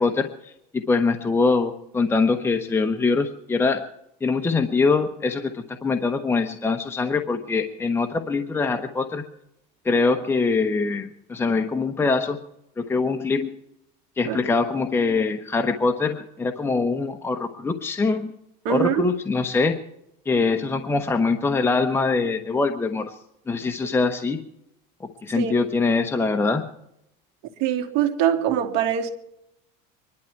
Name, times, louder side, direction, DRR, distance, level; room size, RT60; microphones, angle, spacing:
voice 1, 0.0-3.8 4.2-9.2 9.8-12.4 12.8-13.6 14.2-18.3 18.7-19.8 20.2-23.2 23.5-24.4 25.0-26.6, left 4 dB, 10° left, 1.0 m, -23 dB
voice 2, 18.6-19.0 25.3-25.5 27.6-29.1, right 10 dB, 70° right, 2.6 m, -23 dB
24.5 x 11.5 x 4.6 m
cardioid pair, 130°, 21 cm